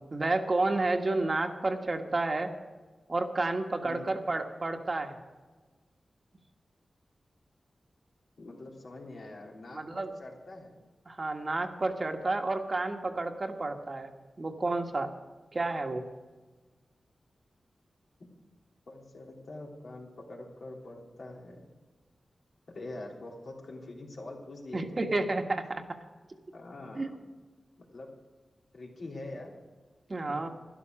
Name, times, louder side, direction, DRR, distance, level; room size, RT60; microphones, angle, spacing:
voice 1, 0.1-2.5 3.1-5.2 9.7-10.1 11.1-14.1 14.4-15.1 15.5-16.0 24.7-26.0 26.9-27.1 30.1-30.5, right 2 dB, 45° right, 4 dB, 1.5 m, -30 dB
voice 2, 8.4-10.8 18.9-21.7 22.7-25.0 26.5-27.3 27.8-28.1 28.7-29.5 30.3-30.5, left 2 dB, 75° left, -2 dB, 3.3 m, -44 dB
12.5 x 11.5 x 6.3 m, 1.3 s
wide cardioid pair, 70°, 0 cm